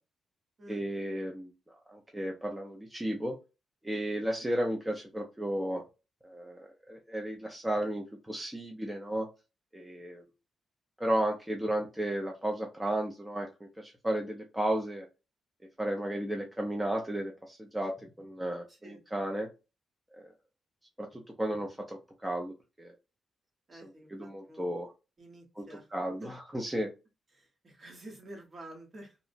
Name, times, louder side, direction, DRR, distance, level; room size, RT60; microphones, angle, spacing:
voice 1, 0.7-1.5 1.9-3.4 3.8-5.8 6.2-9.3 9.7-10.2 11.0-13.5 13.8-15.1 15.8-19.5 20.1-20.2 21.0-22.9 23.7-24.9 25.6-26.9, right 1 dB, 10° right, 1 dB, 0.5 m, -34 dB
voice 2, 18.7-19.0 23.7-24.7 25.2-25.9 26.2-26.3 27.3-29.2, right 1 dB, 35° right, 2 dB, 1.0 m, -49 dB
2.8 x 2.1 x 2.5 m, 0.28 s
cardioid pair, 125°, 0 cm